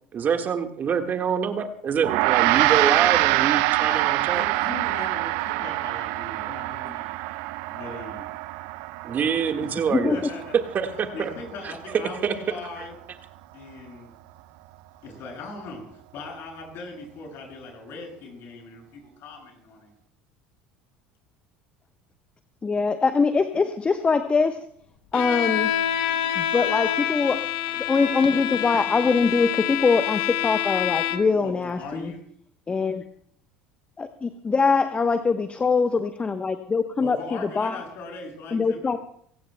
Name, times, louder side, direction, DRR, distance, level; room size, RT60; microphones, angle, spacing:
voice 1, 0.1-4.4 9.0-10.2 10.7-11.3 11.6-12.3, right 7 dB, 40° right, 6 dB, 1.6 m, -26 dB
Gong, 2.0-11.6, right 19 dB, 65° right, 0.6 m, -25 dB
voice 2, 3.9-7.2 7.7-8.3 9.6-9.7 10.1-10.6 11.1-12.9 13.5-14.1 15.0-19.9 31.4-32.2 37.0-38.9, left 3 dB, 55° left, 1 dB, 7.4 m, -39 dB
voice 3, 22.6-24.6 25.1-25.7 26.3-27.5 27.8-32.1 32.7-33.0 34.0-37.8 38.5-39.0, left 4 dB, 25° left, 9 dB, 1.0 m, -23 dB
Bowed string instrument, 25.1-31.4, left 11 dB, 70° left, 1.1 m, -27 dB
24.0 x 17.5 x 2.2 m, 0.64 s
hypercardioid pair, 70°, 5 cm